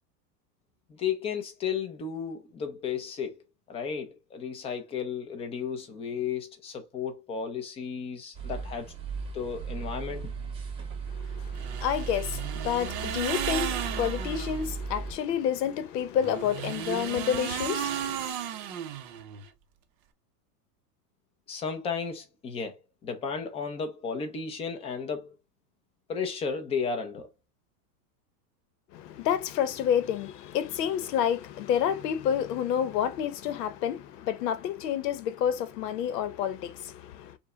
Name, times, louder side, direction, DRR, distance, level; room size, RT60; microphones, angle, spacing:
voice 1, 0.9-3.4 3.7-8.9 9.3-10.3 21.5-25.4 26.1-27.3, left 6 dB, 10° left, 0.5 m, -34 dB
sound 1, 8.3-15.1, right 5 dB, 10° right, 1.0 m, -36 dB
voice 2, 11.1-18.3 28.9-37.4, left 9 dB, 75° left, 0.9 m, -29 dB
sound 2, 11.5-14.7 16.1-19.5, right 10 dB, 30° right, 0.5 m, -34 dB
5.3 x 2.2 x 3.7 m
supercardioid pair, 155°, 49 cm